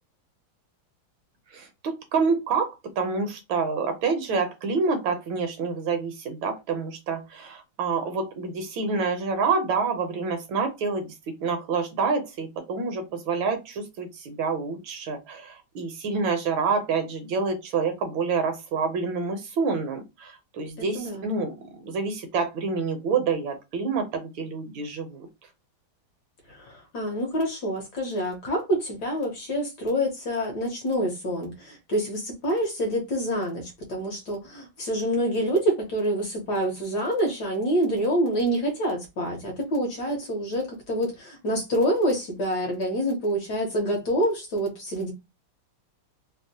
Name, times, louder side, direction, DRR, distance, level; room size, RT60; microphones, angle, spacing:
voice 1, 1.5-11.1 11.4-25.3, right 4 dB, 75° right, 1.3 m, -27 dB
voice 2, 20.8-21.3 26.5-45.1, equal, 60° left, 1.2 m, -27 dB
3.4 x 2.1 x 2.6 m
omnidirectional pair, 2.3 m